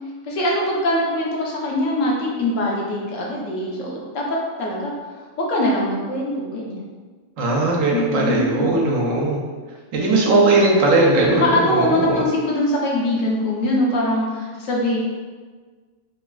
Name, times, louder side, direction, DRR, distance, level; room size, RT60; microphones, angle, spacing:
voice 1, 0.2-4.9 5.4-6.8 7.9-8.8 10.0-10.1 11.3-15.0, left 1 dB, 80° left, -3 dB, 1.0 m, -22 dB
voice 2, 7.4-9.4 9.9-12.2, right 2 dB, 75° right, -2 dB, 1.0 m, -18 dB
3.0 x 2.4 x 2.2 m, 1.4 s
omnidirectional pair, 1.4 m